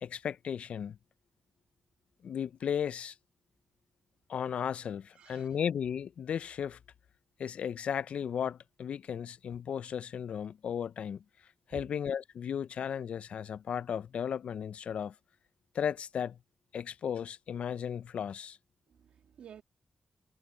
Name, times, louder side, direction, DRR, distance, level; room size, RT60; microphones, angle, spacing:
voice 1, 0.0-1.0 2.2-3.1 4.3-6.8 7.4-11.2 11.7-15.1 15.7-16.4 16.7-18.6, left 8 dB, 75° left, 0.6 m, -35 dB
voice 2, 5.1-5.6 11.7-11.8 18.9-19.6, right 8 dB, 75° right, 1.7 m, -51 dB
supercardioid pair, 40°, 2 cm